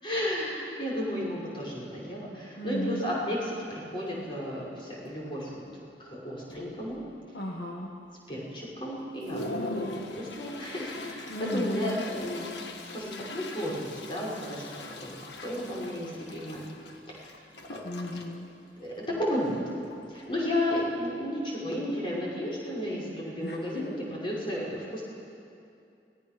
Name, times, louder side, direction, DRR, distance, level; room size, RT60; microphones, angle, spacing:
voice 1, 0.0-5.5 6.0-7.0 8.3-12.5 12.9-16.6 17.1-17.3 17.7-17.8 18.8-19.6 20.1-25.0, left 1 dB, 30° left, -5 dB, 5.8 m, -33 dB
voice 2, 2.6-3.1 7.3-7.9 11.3-12.0 17.8-18.5 23.4-23.9, left 1 dB, 70° left, 1 dB, 1.5 m, -35 dB
Toilet flush, 3.9-4.0 4.5-4.8 5.1-5.6 6.1-6.2 6.5-7.3 7.7-7.8 8.4-8.5 8.9-20.8, left 2 dB, 90° left, 1.5 m, -42 dB
25.0 x 19.0 x 6.1 m, 2.5 s
head